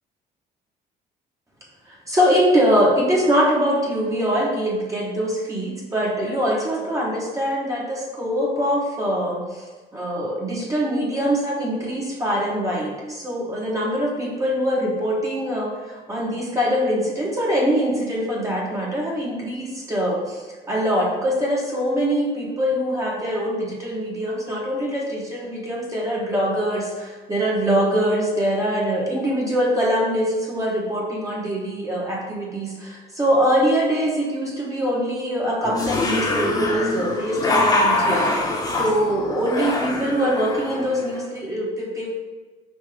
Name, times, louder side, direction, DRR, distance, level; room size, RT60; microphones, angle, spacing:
voice 1, 1.9-9.7 9.9-38.3 38.8-42.1, equal, 20° right, -4 dB, 0.9 m, -23 dB
sound 1, 35.6-41.2, left 2 dB, 20° left, 0.9 m, -24 dB
5.3 x 2.7 x 3.3 m, 1.3 s
cardioid pair, 110°, 17 cm